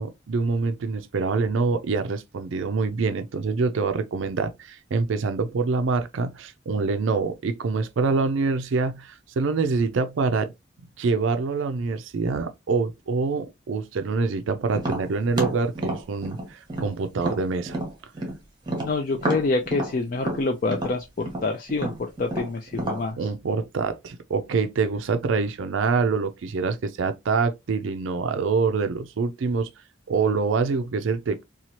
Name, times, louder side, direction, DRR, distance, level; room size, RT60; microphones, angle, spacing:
voice 1, 0.0-10.5 11.0-17.8 23.2-29.7 30.1-31.4, right 4 dB, 75° right, 0.4 m, -25 dB
Tap, 14.7-18.4 18.7-23.0, right 1 dB, 20° right, 0.8 m, -30 dB
voice 2, 18.8-23.2, left 3 dB, 45° left, 0.3 m, -27 dB
2.9 x 2.3 x 2.8 m
head